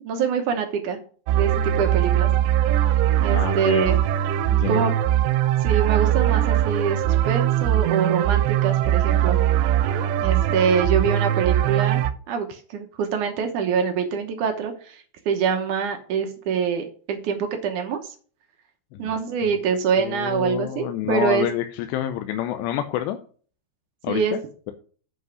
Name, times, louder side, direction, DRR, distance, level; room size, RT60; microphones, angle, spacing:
voice 1, 0.1-1.0 1.4-2.3 3.2-4.0 4.7-4.9 5.6-9.4 10.2-18.0 19.0-21.5 24.1-24.4, right 6 dB, 70° right, 5 dB, 2.0 m, -25 dB
sound 1, 1.3-12.1, right 12 dB, 85° right, 2.8 m, -21 dB
voice 2, 3.3-3.9 4.5-4.8 18.9-19.2 20.0-23.2 24.0-24.4, left 12 dB, 90° left, 7 dB, 2.8 m, -28 dB
7.9 x 5.5 x 6.1 m, 0.42 s
omnidirectional pair, 4.8 m